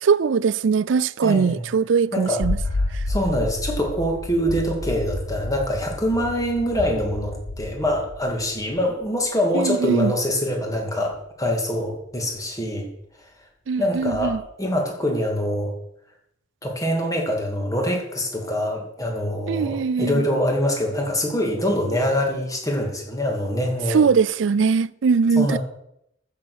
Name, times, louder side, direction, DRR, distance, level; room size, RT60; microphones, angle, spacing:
voice 1, 0.0-2.6 2.9-3.0 9.5-10.1 13.7-14.4 19.5-20.2 23.9-25.6, right 5 dB, 70° right, 0.4 m, -21 dB
voice 2, 1.2-1.7 2.1-2.4 2.7-12.9 13.8-15.7 16.6-24.1 25.4-25.6, equal, 20° left, 2.4 m, -24 dB
sound 1, 2.4-9.2 11.1-11.2 14.1-14.4, left 2 dB, 85° left, 1.3 m, -30 dB
14.5 x 6.7 x 6.2 m
head